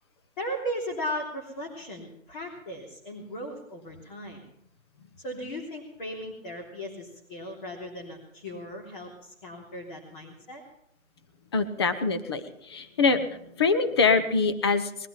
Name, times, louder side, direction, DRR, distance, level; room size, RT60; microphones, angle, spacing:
voice 1, 0.4-4.4 5.2-10.6, equal, 35° left, -2 dB, 3.3 m, -37 dB
voice 2, 11.5-15.1, left 4 dB, 20° left, 10 dB, 0.7 m, -24 dB
20.5 x 12.0 x 5.7 m, 0.76 s
hypercardioid pair, 160°, 40 cm